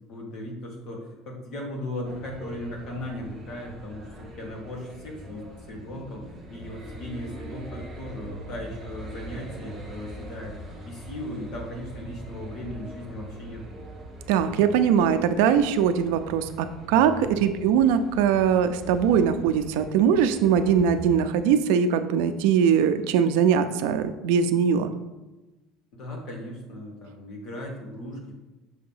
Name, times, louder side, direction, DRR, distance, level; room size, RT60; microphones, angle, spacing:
voice 1, 0.1-10.6 10.8-13.8 17.1-17.3 25.9-28.3, left 1 dB, 40° left, 0 dB, 1.4 m, -37 dB
sound 1, 2.0-21.2, right 1 dB, 10° right, 1.1 m, -42 dB
voice 2, 14.3-24.9, right 7 dB, 75° right, 10 dB, 0.4 m, -21 dB
6.3 x 2.9 x 5.5 m, 1.1 s
cardioid pair, 175°, 0 cm